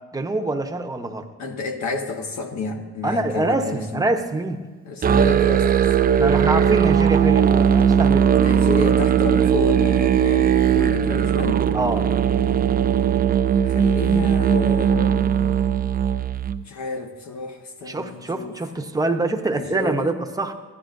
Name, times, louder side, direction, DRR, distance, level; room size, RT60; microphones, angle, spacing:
voice 1, 0.0-1.3 3.0-4.6 6.2-8.3 11.7-12.1 17.9-20.5, right 2 dB, 10° right, 4 dB, 0.8 m, -25 dB
voice 2, 1.4-4.0 4.8-6.1 8.4-11.7 13.6-15.3 16.6-18.5 19.5-20.1, left 4 dB, 65° left, 3 dB, 1.3 m, -30 dB
Musical instrument, 5.0-16.6, right 8 dB, 30° right, 0.4 m, -18 dB
15.0 x 10.5 x 2.6 m, 1.3 s
cardioid pair, 90°, 30 cm